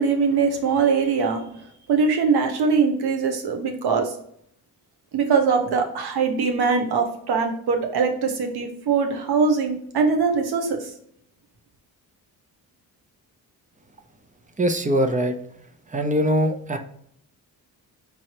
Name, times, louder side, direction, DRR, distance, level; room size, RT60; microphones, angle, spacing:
voice 1, 0.0-1.4 1.9-4.1 5.1-10.9, right 5 dB, 90° right, 5 dB, 1.0 m, -22 dB
voice 2, 14.6-15.3 15.9-16.8, equal, 20° right, 7 dB, 0.6 m, -22 dB
5.3 x 3.2 x 2.9 m, 0.67 s
cardioid pair, 100°, 37 cm